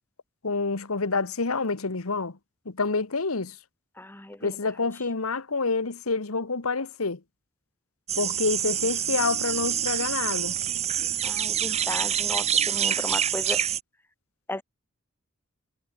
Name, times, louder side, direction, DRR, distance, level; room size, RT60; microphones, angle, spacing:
voice 1, 0.4-2.3 2.6-3.5 4.4-7.2 8.2-10.6, left 4 dB, 90° left, 1.4 m, -27 dB
voice 2, 4.0-4.5 11.2-13.6 14.5-14.6, left 1 dB, 10° left, 1.1 m, -35 dB
sound 1, 8.1-13.8, right 10 dB, 30° right, 0.7 m, -27 dB
head